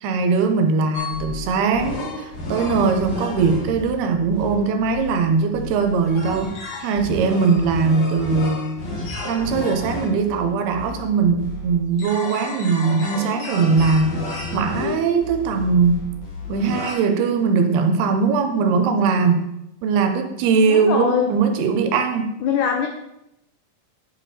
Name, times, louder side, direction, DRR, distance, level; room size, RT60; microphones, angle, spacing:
voice 1, 0.0-8.7 9.3-14.2 14.5-16.0 16.5-19.5 19.8-22.4, right 5 dB, 85° right, 6 dB, 2.9 m, -20 dB
sound 1, 0.9-16.9, left 2 dB, 50° left, 2.6 m, -32 dB
voice 2, 20.7-21.3 22.4-22.9, left 7 dB, 85° left, 3 dB, 1.7 m, -22 dB
10.0 x 5.5 x 4.3 m, 0.85 s
omnidirectional pair, 4.5 m